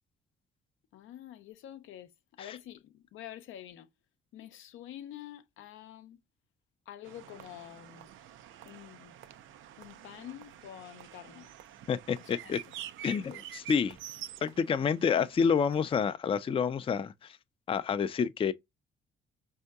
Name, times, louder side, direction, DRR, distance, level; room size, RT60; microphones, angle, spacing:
voice 1, 0.9-2.1 2.4-3.9 4.3-6.2 6.9-8.1 8.7-9.2 9.8-11.5 12.2-12.6, left 12 dB, 80° left, 0.5 m, -47 dB
sound 1, 7.0-16.0, right 11 dB, 80° right, 0.5 m, -48 dB
voice 2, 11.9-12.6 13.0-14.0 14.4-17.4 17.7-18.5, left 6 dB, 25° left, 0.4 m, -29 dB
4.4 x 2.7 x 2.3 m
cardioid pair, 90°, 20 cm